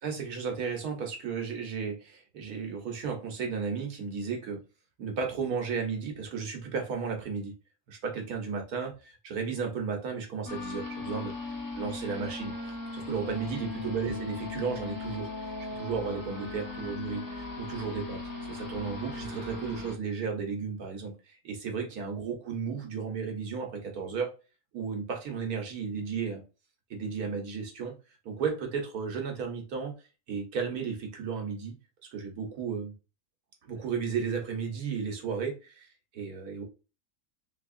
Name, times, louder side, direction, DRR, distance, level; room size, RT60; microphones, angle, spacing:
voice 1, 0.0-4.6 5.0-7.5 7.9-11.3 11.7-12.5 12.9-18.2 18.5-24.3 24.7-26.4 26.9-27.9 28.2-29.9 30.3-31.8 32.1-32.9 33.7-35.9 36.1-36.6, right 5 dB, 70° right, 3 dB, 1.5 m, -34 dB
sound 1, 10.5-20.0, left 3 dB, 20° left, 0.5 m, -38 dB
3.4 x 3.4 x 2.4 m, 0.31 s
omnidirectional pair, 1.6 m